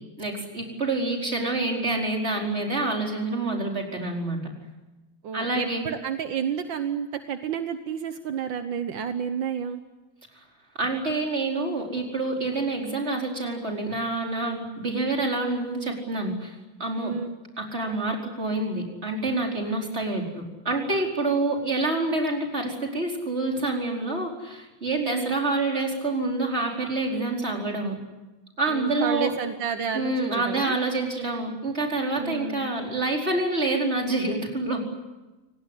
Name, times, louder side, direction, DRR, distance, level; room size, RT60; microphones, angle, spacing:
voice 1, 0.2-4.5 5.3-5.8 10.8-16.5 16.8-17.1 17.6-28.0 28.6-29.3 29.9-34.8, right 2 dB, 35° right, 0 dB, 5.0 m, -27 dB
voice 2, 5.2-9.8 17.0-17.4 24.9-25.4 28.7-30.7 32.2-32.7, right 7 dB, 75° right, 8 dB, 1.8 m, -30 dB
29.0 x 18.5 x 10.0 m, 1.1 s
omnidirectional pair, 2.1 m